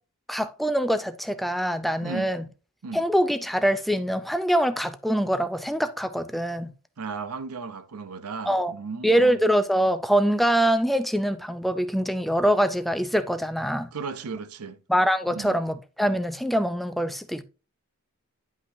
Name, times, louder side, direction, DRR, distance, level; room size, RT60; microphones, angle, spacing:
voice 1, 0.3-2.5 2.9-6.7 8.5-8.7 9.0-13.9 14.9-17.4, equal, ahead, 0.4 m, -24 dB
voice 2, 7.0-9.4 13.9-14.8 15.3-15.6, right 5 dB, 90° right, 0.7 m, -35 dB
9.9 x 5.6 x 2.7 m
head